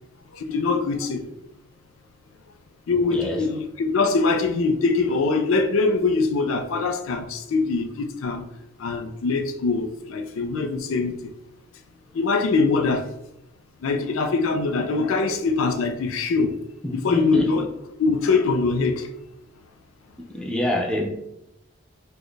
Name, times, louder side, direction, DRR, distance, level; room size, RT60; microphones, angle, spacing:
voice 1, 0.3-1.3 2.9-8.5 8.8-11.3 12.1-13.1 13.8-16.5 16.9-17.7 18.0-19.1, left 4 dB, 75° left, 7 dB, 0.4 m, -23 dB
voice 2, 3.1-3.4 16.8-17.5 20.3-21.1, left 1 dB, 5° left, 0 dB, 0.4 m, -26 dB
4.2 x 2.2 x 3.1 m, 0.87 s
head